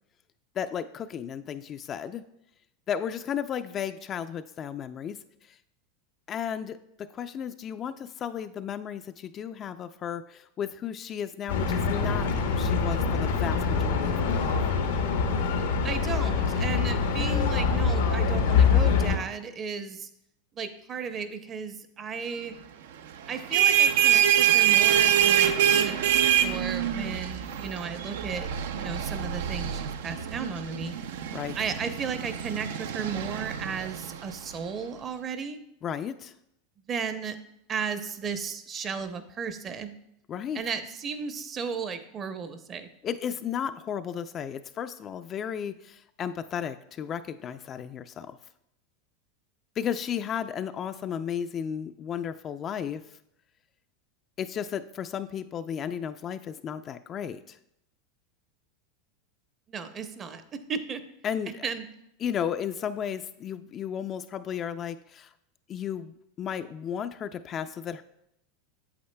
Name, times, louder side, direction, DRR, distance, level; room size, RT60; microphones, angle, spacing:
voice 1, 0.6-2.2 2.9-5.2 6.3-14.6 31.3-31.6 35.8-36.3 40.3-40.6 43.0-48.4 49.8-53.0 54.4-57.6 61.2-61.6 62.2-65.3 65.7-68.0, left 8 dB, 35° left, 10 dB, 0.3 m, -34 dB
sound 1, 11.5-19.2, left 5 dB, 85° left, 0.9 m, -24 dB
voice 2, 15.8-20.1 20.6-22.5 23.3-30.9 31.6-35.6 36.9-37.4 37.7-39.9 40.5-42.9 59.7-61.0 61.6-61.9, right 6 dB, 30° right, 9 dB, 0.7 m, -34 dB
sound 2, 23.3-34.6, right 10 dB, 75° right, 0.4 m, -25 dB
8.5 x 7.7 x 2.2 m, 0.79 s
hypercardioid pair, 110°, 0 cm